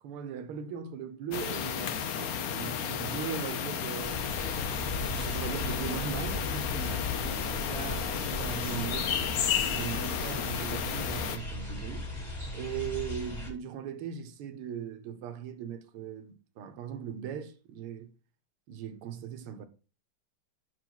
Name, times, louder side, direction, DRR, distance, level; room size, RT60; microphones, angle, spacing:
voice 1, 0.0-4.3 5.1-7.1 7.6-9.1 9.7-12.1 12.5-18.1 18.7-19.7, right 8 dB, 80° right, 1.8 m, -39 dB
sound 1, 1.3-11.4, left 8 dB, 75° left, 0.8 m, -33 dB
sound 2, 4.0-13.5, left 2 dB, 20° left, 2.0 m, -37 dB
5.6 x 4.7 x 5.9 m
omnidirectional pair, 2.4 m